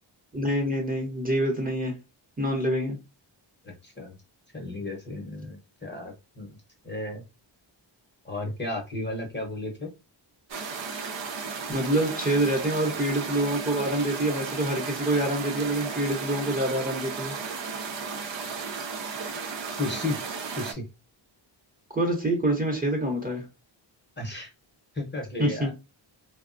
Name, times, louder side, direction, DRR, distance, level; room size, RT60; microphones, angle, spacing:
voice 1, 0.3-2.0 2.4-3.0 11.7-17.3 21.9-23.4 25.4-25.7, right 1 dB, 20° right, 0.8 m, -26 dB
voice 2, 3.6-4.1 4.5-6.6 6.8-7.2 8.2-9.9 19.8-20.3 20.6-20.8 24.2-24.5 24.9-25.7, left 2 dB, 25° left, 0.8 m, -34 dB
sound 1, 10.5-20.7, right 5 dB, 65° right, 0.7 m, -34 dB
3.2 x 2.1 x 2.4 m
wide cardioid pair, 115°, 47 cm